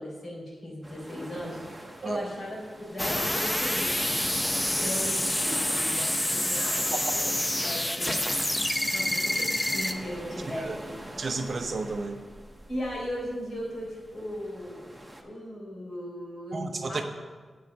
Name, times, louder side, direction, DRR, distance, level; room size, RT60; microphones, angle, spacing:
voice 1, 0.0-4.1 4.5-8.2 8.6-10.9 12.7-14.9 15.2-17.0, equal, 50° left, -3 dB, 3.9 m, -37 dB
sound 1, 0.8-15.2, right 1 dB, 5° right, 1.1 m, -44 dB
sound 2, 3.0-9.9, left 1 dB, 10° left, 0.6 m, -27 dB
voice 2, 10.5-10.8 11.2-12.2 16.5-17.0, right 3 dB, 50° right, 5 dB, 0.8 m, -32 dB
8.6 x 6.2 x 8.3 m, 1.5 s
wide cardioid pair, 135°, 0 cm